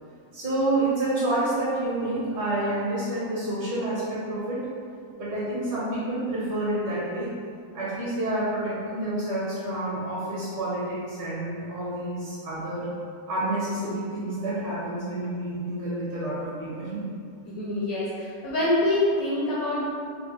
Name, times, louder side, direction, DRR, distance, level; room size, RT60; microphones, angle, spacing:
voice 1, 0.3-4.7 5.2-7.3 7.7-12.9 13.3-17.0, right 1 dB, 60° right, -10 dB, 1.5 m, -28 dB
voice 2, 17.5-19.9, left 1 dB, 75° left, -7 dB, 0.8 m, -25 dB
3.8 x 2.1 x 4.2 m, 2.4 s
omnidirectional pair, 2.1 m